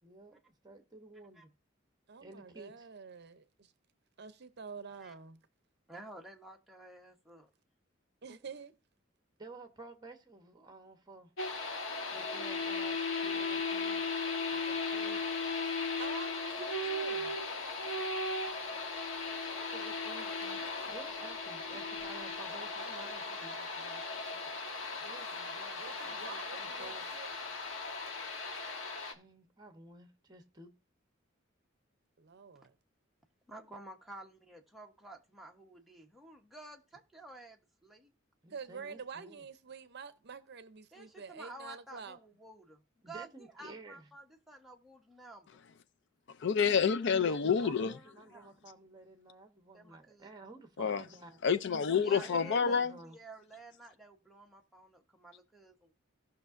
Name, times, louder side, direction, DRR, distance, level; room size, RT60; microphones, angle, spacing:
voice 1, 0.0-1.5 2.2-2.7 8.3-8.4 9.4-11.3 12.1-14.1 14.5-15.2 19.4-24.5 25.0-27.0 29.1-30.7 38.4-39.4 43.0-44.1 47.6-51.4 51.9-53.2, right 2 dB, 20° right, 1.1 m, -53 dB
voice 2, 2.1-3.7 4.2-5.4 8.2-8.7 16.0-17.4 25.8-27.3 32.2-32.7 38.5-42.2, right 5 dB, 60° right, 0.6 m, -47 dB
voice 3, 5.9-7.5 33.5-38.1 40.9-45.6 47.3-48.5 49.7-50.3 51.9-55.9, right 1 dB, ahead, 1.0 m, -52 dB
sound 1, 11.4-29.1, left 3 dB, 85° left, 1.3 m, -37 dB
voice 4, 46.4-47.9 50.8-51.0 51.4-52.9, left 6 dB, 65° left, 0.5 m, -28 dB
17.0 x 5.7 x 2.6 m
head